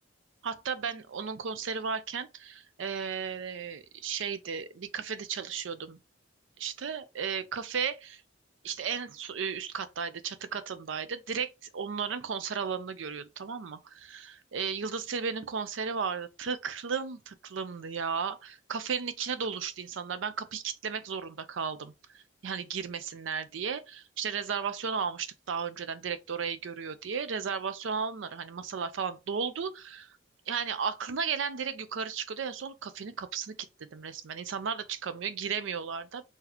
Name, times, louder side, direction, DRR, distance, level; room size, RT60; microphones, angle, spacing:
voice 1, 0.4-6.0 6.6-8.2 8.6-30.2 30.5-36.2, right 6 dB, 80° right, 0.5 m, -34 dB
3.9 x 2.7 x 2.9 m
head